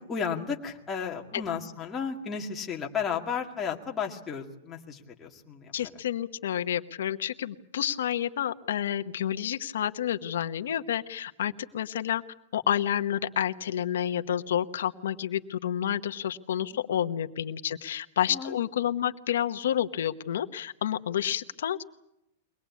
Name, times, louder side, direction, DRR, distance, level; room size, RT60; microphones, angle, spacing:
voice 1, 0.1-5.7 16.7-16.8 18.3-18.6, left 6 dB, 15° left, 0 dB, 2.1 m, -33 dB
voice 2, 5.7-12.2 12.5-21.8, left 10 dB, 85° left, 9 dB, 1.1 m, -29 dB
23.0 x 20.0 x 8.4 m, 0.81 s
supercardioid pair, 170°, 0 cm